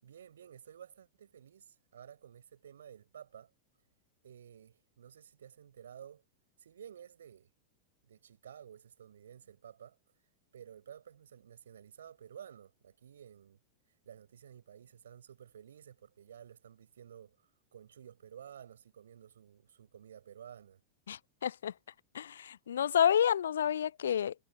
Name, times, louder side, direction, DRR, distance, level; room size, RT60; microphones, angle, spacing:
voice 1, 0.0-3.5 4.2-6.2 6.6-7.5 8.0-10.0 10.5-13.6 14.0-17.4 17.7-20.8, right 9 dB, 65° right, 5.4 m, -53 dB
voice 2, 21.1-21.7 22.1-24.3, left 9 dB, 65° left, 0.3 m, -29 dB
figure-of-eight pair, 90°, 0 cm